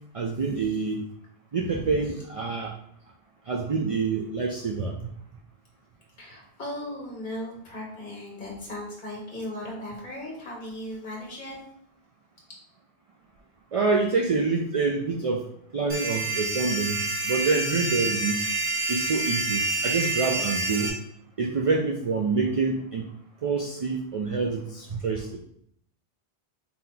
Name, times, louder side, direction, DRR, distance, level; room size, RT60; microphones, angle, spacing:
voice 1, 0.1-1.0 1.5-2.7 3.5-5.0 13.7-15.4 15.7-18.5 18.9-20.9 21.4-23.0 23.4-25.4, right 4 dB, 50° right, 1 dB, 0.4 m, -26 dB
voice 2, 1.6-1.9 6.2-11.6, left 1 dB, 50° left, -3 dB, 1.3 m, -37 dB
sound 1, 15.9-20.9, right 2 dB, 70° right, 1.1 m, -28 dB
4.1 x 2.8 x 3.7 m, 0.68 s
omnidirectional pair, 1.0 m